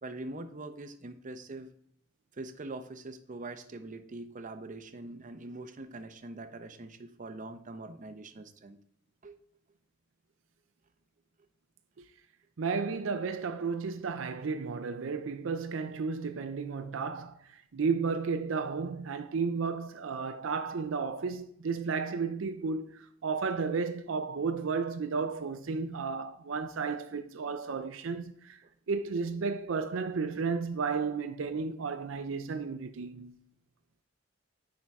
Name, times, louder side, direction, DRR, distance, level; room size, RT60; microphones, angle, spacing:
voice 1, 0.0-1.7 2.3-8.8 9.2-9.4, right 2 dB, 40° right, 0.7 m, -43 dB
voice 2, 12.6-28.6 28.9-33.3, right 5 dB, 80° right, 0.5 m, -33 dB
9.6 x 3.8 x 4.6 m
head